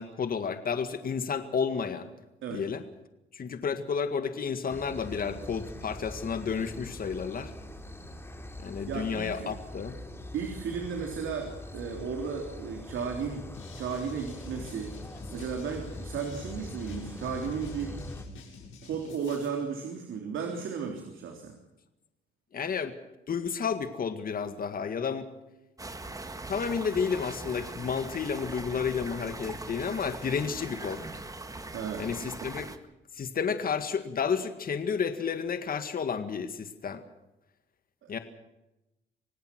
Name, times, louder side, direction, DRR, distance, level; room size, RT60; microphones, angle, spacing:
voice 1, 0.0-2.1 2.5-2.8 3.3-7.5 8.6-9.9 22.5-22.9 23.3-25.3 26.5-31.0 32.0-32.7 33.2-37.0 38.1-38.2, left 6 dB, 45° left, 9 dB, 2.0 m, -31 dB
sound 1, 4.7-18.3, left 1 dB, 10° left, 3.3 m, -43 dB
voice 2, 8.9-9.5 10.3-13.5 13.7-14.9 15.3-18.0 18.8-21.6 31.7-32.1 32.4-32.5 38.0-38.2, right 6 dB, 80° right, 3 dB, 3.6 m, -34 dB
sound 2, 13.5-19.5, left 4 dB, 80° left, 7.1 m, -49 dB
sound 3, 25.8-32.8, right 2 dB, 15° right, 1.9 m, -41 dB
26.0 x 18.0 x 6.1 m, 0.94 s
cardioid pair, 90°, 20 cm